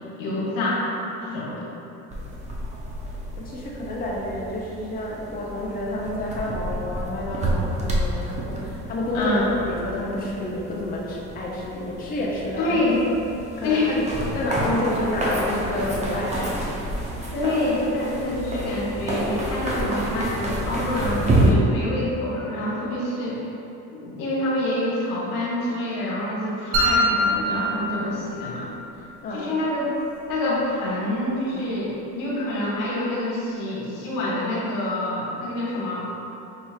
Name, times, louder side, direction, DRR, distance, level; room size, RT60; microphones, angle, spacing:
voice 1, 0.2-0.8 1.2-1.7 9.1-9.5 12.6-13.0 13.6-14.0 17.3-23.4 24.0-28.7 29.3-29.9 30.3-36.0, left 1 dB, 80° left, -5 dB, 1.1 m, -26 dB
sound 1, 2.1-21.5, right 1 dB, 20° right, 0.7 m, -29 dB
voice 2, 3.4-9.4 9.7-12.8 13.6-14.0 14.3-16.8 29.2-29.5, left 1 dB, 25° left, -5 dB, 0.7 m, -29 dB
sound 2, 26.7-28.7, equal, 90° right, 1.0 m, -23 dB
5.4 x 3.1 x 2.4 m, 2.9 s
supercardioid pair, 100°, 33 cm